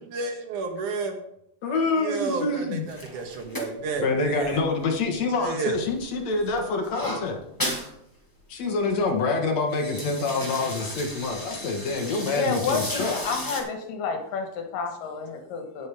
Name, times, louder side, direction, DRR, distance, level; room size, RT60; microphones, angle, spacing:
voice 1, 0.1-1.2 2.0-4.6 5.3-5.8, right 4 dB, 70° right, 4 dB, 2.7 m, -31 dB
voice 2, 1.6-2.8 4.0-7.4 8.5-13.1, left 3 dB, 60° left, 3 dB, 2.4 m, -26 dB
sound 1, 2.9-5.4 5.7-7.9 8.3-8.4 8.6-9.0 9.5-13.6, equal, 10° left, 1.0 m, -35 dB
voice 3, 12.2-15.9, left 5 dB, 85° left, 4 dB, 3.2 m, -30 dB
17.0 x 6.4 x 3.5 m, 0.75 s
omnidirectional pair, 3.8 m